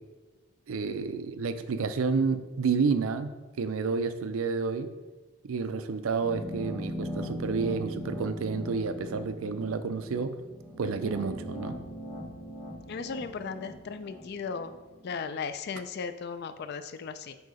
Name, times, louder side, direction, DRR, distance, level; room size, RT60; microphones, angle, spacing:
voice 1, 0.7-4.9 5.4-10.4 10.8-11.8, right 5 dB, 90° right, 11 dB, 0.5 m, -30 dB
sound 1, 6.2-15.1, equal, 15° left, 1.2 m, -40 dB
voice 2, 12.9-14.7 15.0-17.4, left 5 dB, 55° left, 11 dB, 0.4 m, -36 dB
7.8 x 2.8 x 4.9 m, 1.2 s
head